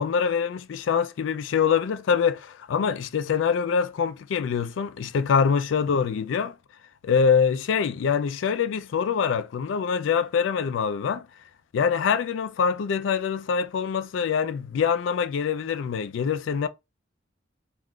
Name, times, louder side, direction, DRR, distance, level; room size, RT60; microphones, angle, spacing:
voice 1, 0.0-6.5 7.0-11.2 11.7-16.7, left 6 dB, 80° left, 0.3 m, -24 dB
3.5 x 2.4 x 2.3 m
head